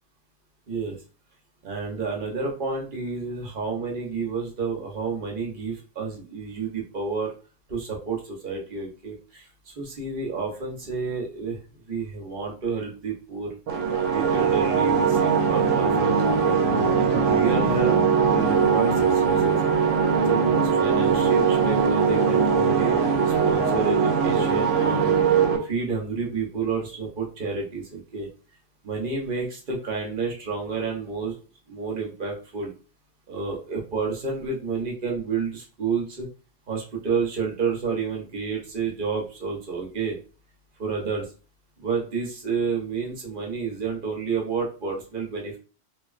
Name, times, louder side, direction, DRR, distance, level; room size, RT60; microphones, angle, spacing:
voice 1, 0.7-1.0 1.6-7.3 7.7-11.6 11.9-13.5 14.0-16.6 17.1-19.6 20.1-25.1 25.6-28.3 28.8-31.4 31.7-32.7 33.3-36.3 36.7-40.2 40.8-41.3 41.8-45.6, right 5 dB, 45° right, -1 dB, 0.9 m, -30 dB
sound 1, 13.7-25.6, right 6 dB, 75° right, 1.0 m, -21 dB
3.0 x 2.5 x 2.4 m, 0.36 s
omnidirectional pair, 1.3 m